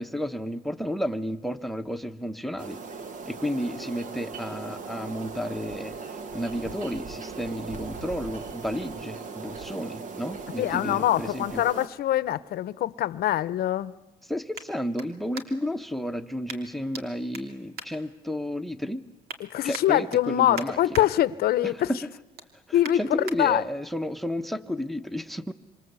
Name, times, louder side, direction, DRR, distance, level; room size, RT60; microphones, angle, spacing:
voice 1, 0.0-2.8 3.2-11.6 14.3-19.0 19.6-21.0 21.6-22.0 22.7-25.5, equal, ahead, 1.2 m, -32 dB
sound 1, 2.6-11.9, right 4 dB, 50° right, 1.9 m, -39 dB
voice 2, 10.6-13.9 19.4-21.9 22.7-23.6, left 13 dB, 65° left, 0.9 m, -24 dB
sound 2, 14.5-15.8 16.5-17.0 17.3-18.6 19.0-19.4 19.7-21.1 21.5-21.7 22.1-23.4 23.9-24.0, right 4 dB, 65° right, 3.0 m, -42 dB
26.5 x 26.5 x 8.3 m
cardioid pair, 110°, 17 cm